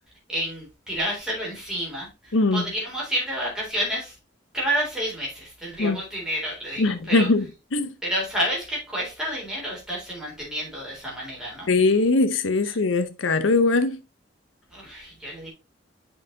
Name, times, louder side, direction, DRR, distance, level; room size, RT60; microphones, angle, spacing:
voice 1, 0.3-4.1 4.5-7.3 8.0-11.7 14.7-15.5, equal, 5° right, 3.6 m, -29 dB
voice 2, 2.3-2.6 5.8-6.0 6.8-7.5 7.7-7.9 11.7-14.0, left 3 dB, 90° left, 0.7 m, -21 dB
8.0 x 5.4 x 2.7 m
head